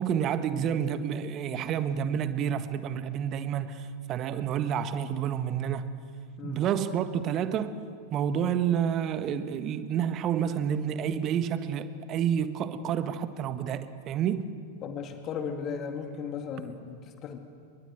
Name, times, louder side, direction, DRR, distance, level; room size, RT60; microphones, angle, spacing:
voice 1, 0.0-6.0 6.4-7.7 8.1-14.5, right 8 dB, 35° right, 1.6 m, -29 dB
voice 2, 14.8-17.4, left 6 dB, 30° left, 2.1 m, -36 dB
29.5 x 23.0 x 8.0 m
figure-of-eight pair, 90°, 0 cm